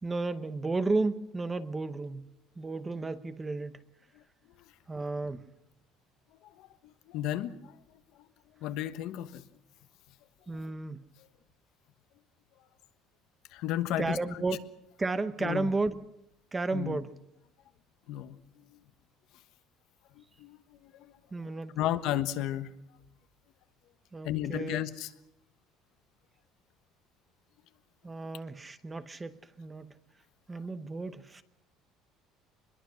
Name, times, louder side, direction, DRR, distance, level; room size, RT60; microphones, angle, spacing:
voice 1, 0.0-2.3 2.6-3.8 4.9-5.4 10.5-11.0 14.0-14.6 15.0-16.0 16.5-17.1 21.3-21.9 24.1-24.8 28.0-29.9 30.5-31.4, right 3 dB, 15° right, 12 dB, 0.8 m, -33 dB
voice 2, 6.4-7.8 8.1-8.3 8.6-9.4 10.5-10.7 13.5-14.4 15.4-15.7 16.7-17.0 18.1-18.8 20.1-21.1 21.7-22.7 24.2-25.1, left 12 dB, 60° left, 11 dB, 1.3 m, -34 dB
24.0 x 21.5 x 6.5 m, 0.83 s
cardioid pair, 165°, 0 cm